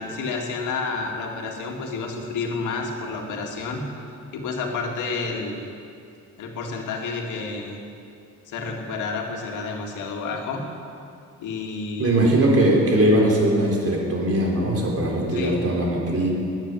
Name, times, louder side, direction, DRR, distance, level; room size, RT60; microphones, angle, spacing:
voice 1, 0.0-3.8 4.3-5.7 6.4-7.8 8.5-10.6 11.4-12.2 15.3-15.6, left 4 dB, 85° left, 1 dB, 2.0 m, -30 dB
voice 2, 12.0-16.3, right 1 dB, 50° right, -2 dB, 4.0 m, -20 dB
12.0 x 9.5 x 9.6 m, 2.5 s
cardioid pair, 90°, 30 cm